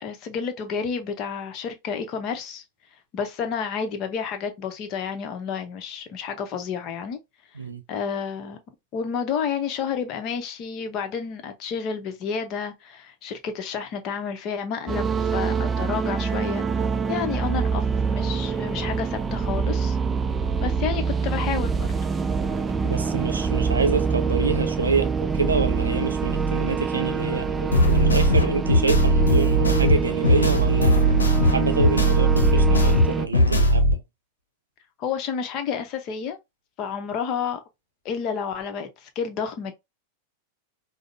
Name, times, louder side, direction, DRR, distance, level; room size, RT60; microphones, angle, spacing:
voice 1, 0.0-2.6 3.1-7.2 7.9-8.6 8.9-16.6 17.1-20.0 20.6-21.9 35.0-36.4 36.8-37.6 38.0-39.7, left 6 dB, 40° left, 0.7 m, -30 dB
sound 1, 14.9-33.3, right 5 dB, 15° right, 0.3 m, -25 dB
voice 2, 22.8-31.0 31.5-34.0, right 4 dB, 75° right, 0.5 m, -27 dB
sound 2, 27.7-33.9, equal, 75° left, 0.8 m, -19 dB
5.0 x 2.0 x 2.5 m
figure-of-eight pair, 90°, 0 cm